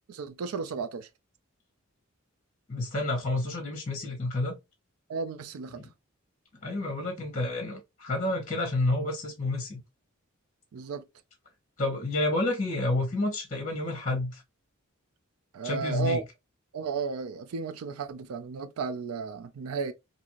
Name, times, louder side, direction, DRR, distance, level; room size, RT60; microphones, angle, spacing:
voice 1, 0.1-1.1 5.1-5.8 10.7-11.0 15.5-16.2 16.7-19.9, right 5 dB, 85° right, 0.4 m, -34 dB
voice 2, 2.7-4.6 5.8-5.9 6.6-9.8 11.8-14.4 15.6-16.2, left 2 dB, 35° left, 0.9 m, -29 dB
2.7 x 2.5 x 2.9 m
head